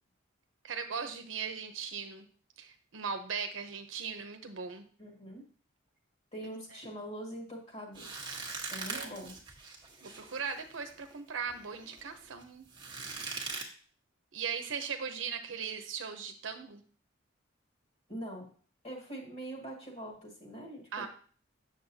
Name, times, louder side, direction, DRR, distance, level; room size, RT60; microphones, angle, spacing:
voice 1, 0.6-2.3 2.6-4.9 8.9-9.2 10.0-13.4 14.3-16.8 20.9-21.1, right 6 dB, 85° right, 6 dB, 0.7 m, -39 dB
voice 2, 5.0-5.5 6.3-8.2 8.7-9.4 18.1-18.5 18.8-21.1, right 1 dB, 35° left, -1 dB, 2.0 m, -43 dB
sound 1, 8.0-13.6, right 4 dB, 25° right, 1.2 m, -42 dB
8.2 x 6.4 x 2.7 m, 0.43 s
head